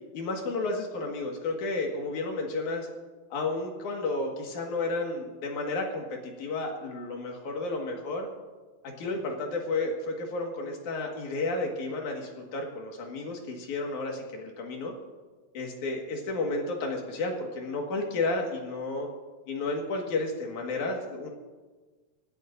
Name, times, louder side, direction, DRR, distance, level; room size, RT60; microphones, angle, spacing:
voice 1, 0.1-2.9 3.3-8.3 8.8-14.9 15.5-19.1 19.5-21.3, left 3 dB, 55° left, 1 dB, 2.8 m, -32 dB
25.0 x 14.5 x 2.6 m, 1.3 s
omnidirectional pair, 4.7 m